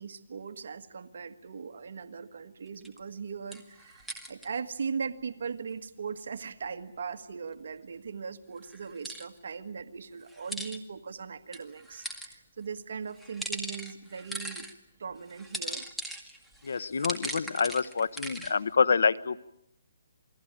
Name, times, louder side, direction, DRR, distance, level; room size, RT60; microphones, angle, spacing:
voice 1, 0.0-14.7 15.0-15.9, right 6 dB, 65° right, 8 dB, 1.7 m, -39 dB
sound 1, 2.8-3.0 3.5-4.5 8.7-9.3 10.3-10.8 11.5-12.3 13.1-14.7 15.3-18.5, right 1 dB, ahead, 1.9 m, -39 dB
voice 2, 16.6-19.5, left 5 dB, 75° left, 18 dB, 1.0 m, -27 dB
28.5 x 21.0 x 9.0 m, 0.78 s
hypercardioid pair, 160°, 0 cm